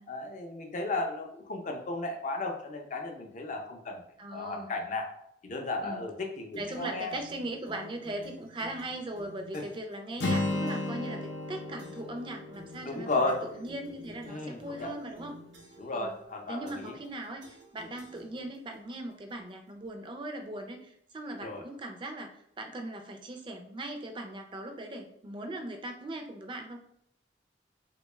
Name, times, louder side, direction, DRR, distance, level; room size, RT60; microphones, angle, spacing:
voice 1, 0.1-4.0 4.3-5.1 5.4-7.1 9.5-9.6 12.8-13.4 14.3-14.9 15.8-16.9 21.4-21.6, left 2 dB, 45° left, 3 dB, 0.5 m, -34 dB
voice 2, 4.2-4.7 5.8-6.0 6.5-15.4 15.9-16.2 16.5-26.8, right 1 dB, 30° right, 4 dB, 0.4 m, -39 dB
sound 1, 6.5-10.0 10.7-11.1 11.8-12.2 12.5-16.0 16.7-17.1 17.4-18.7, equal, 90° right, 0.7 m, -52 dB
Acoustic guitar, 10.2-14.1, left 2 dB, 85° left, 0.6 m, -34 dB
3.5 x 2.2 x 3.1 m, 0.72 s
head